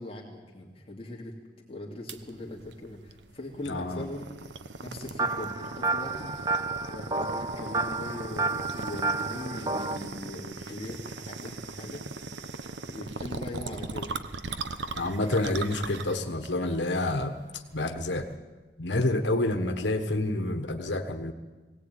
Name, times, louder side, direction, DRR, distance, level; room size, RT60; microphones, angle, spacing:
voice 1, 0.0-1.3 1.7-4.4 4.8-6.4 6.9-12.0 12.9-14.2, left 1 dB, 30° left, -2 dB, 2.6 m, -40 dB
sound 1, 2.1-18.4, right 3 dB, 85° right, 1.1 m, -39 dB
voice 2, 3.6-4.1 14.9-17.4 17.7-18.3 18.8-21.3, left 2 dB, 85° left, 6 dB, 1.4 m, -28 dB
sound 2, 5.2-10.0, right 3 dB, 20° right, 0.7 m, -30 dB
22.0 x 17.5 x 9.3 m, 1.3 s
head